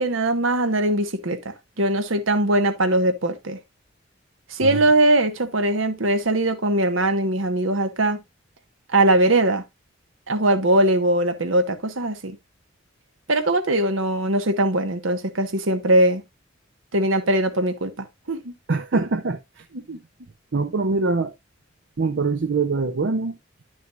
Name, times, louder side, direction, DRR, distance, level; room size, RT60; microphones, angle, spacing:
voice 1, 0.0-3.6 4.5-8.2 8.9-9.6 10.3-12.4 13.3-16.2 16.9-18.5 18.9-19.0 19.7-20.0, right 1 dB, 85° right, 1.3 m, -21 dB
voice 2, 18.7-19.7 20.5-21.3 22.0-23.4, right 3 dB, 65° right, 0.6 m, -23 dB
10.5 x 6.3 x 2.5 m
head